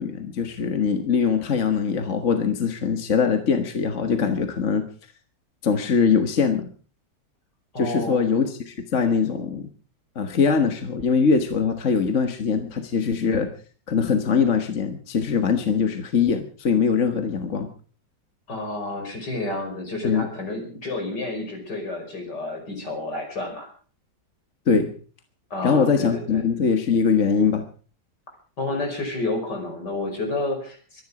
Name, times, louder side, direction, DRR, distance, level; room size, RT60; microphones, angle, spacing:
voice 1, 0.0-4.9 5.6-6.7 7.8-9.7 10.1-13.5 13.9-17.7 20.0-20.3 24.7-24.9 25.6-27.6, left 6 dB, 45° left, 6 dB, 1.6 m, -22 dB
voice 2, 7.7-8.2 18.5-23.7 25.5-26.4 28.6-31.0, left 2 dB, 65° left, 3 dB, 5.8 m, -30 dB
24.0 x 11.0 x 4.9 m, 0.42 s
omnidirectional pair, 2.0 m